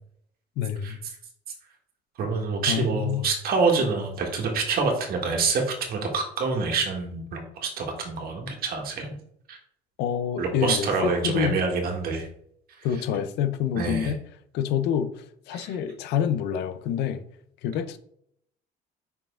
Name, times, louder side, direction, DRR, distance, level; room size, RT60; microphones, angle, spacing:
voice 1, 0.6-1.0 2.7-3.3 10.0-11.6 12.8-14.2 14.5-17.2 17.6-18.0, left 8 dB, 85° left, 11 dB, 0.6 m, -27 dB
voice 2, 2.2-9.1 9.5-9.6 10.4-12.3 12.8-12.9 13.7-14.1 15.5-15.8, right 4 dB, 65° right, 2 dB, 1.6 m, -26 dB
5.5 x 4.9 x 3.7 m, 0.70 s
cardioid pair, 110°, 17 cm